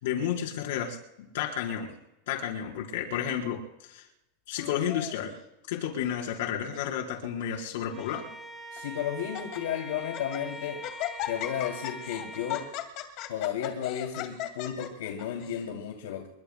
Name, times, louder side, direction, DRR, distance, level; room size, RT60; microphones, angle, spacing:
voice 1, 0.0-1.9 2.3-4.0 4.5-5.3 5.7-8.2, left 9 dB, 60° left, 0 dB, 4.2 m, -32 dB
Laughter, 4.6-5.4 6.1-6.5 6.7-6.8 7.6-8.2 8.8-8.9 9.2-9.6 10.0-10.4 10.8-15.6, left 13 dB, 40° left, 2.1 m, -38 dB
Bowed string instrument, 7.9-12.8, right 1 dB, ahead, 3.7 m, -43 dB
voice 2, 8.7-10.8 11.3-12.7 13.3-16.3, left 9 dB, 80° left, 2 dB, 2.7 m, -33 dB
28.5 x 23.0 x 2.2 m, 0.91 s
supercardioid pair, 170°, 0 cm